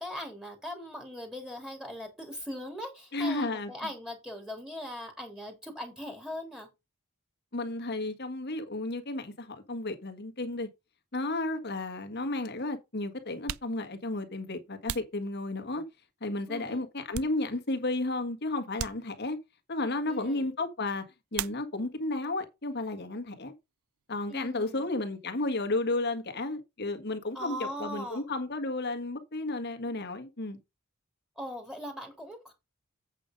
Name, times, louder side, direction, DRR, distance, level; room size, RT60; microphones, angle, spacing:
voice 1, 0.0-6.7 16.5-16.8 20.1-20.5 24.3-24.9 27.3-28.2 31.4-32.5, left 1 dB, 5° right, 3.1 m, -40 dB
voice 2, 3.1-3.7 7.5-10.7 11.1-15.8 16.2-19.4 19.7-21.0 21.3-23.5 24.1-30.6, left 2 dB, 50° left, 1.6 m, -33 dB
sound 1, 11.6-11.7 12.6-12.7 13.3-15.9 16.5-17.9 18.1-18.3 18.7-19.6 21.3-22.1 22.4-23.1 23.3-25.5, right 11 dB, 80° right, 0.5 m, -42 dB
8.3 x 5.2 x 5.2 m
head